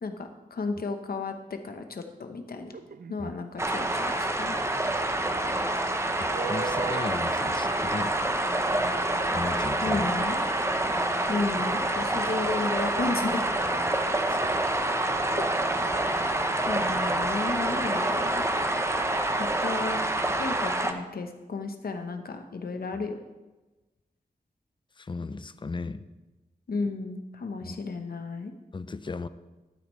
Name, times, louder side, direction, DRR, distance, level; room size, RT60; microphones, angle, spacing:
voice 1, 0.0-2.8 3.1-4.6 9.8-10.4 11.3-13.8 15.4-15.5 16.0-16.2 16.7-18.4 19.4-20.0 20.4-23.2 26.7-28.5, left 3 dB, 80° left, 6 dB, 1.0 m, -33 dB
sound 1, 2.7-3.3 6.3-7.8, right 6 dB, 80° right, 0.5 m, -37 dB
sound 2, 3.6-20.9, right 1 dB, 15° right, 0.7 m, -27 dB
voice 2, 6.2-8.2 9.3-10.1 14.3-14.4 25.0-26.1 27.6-27.8 28.7-29.3, left 4 dB, 30° left, 13 dB, 0.4 m, -36 dB
12.0 x 8.8 x 3.2 m, 1.1 s
wide cardioid pair, 100°, 16 cm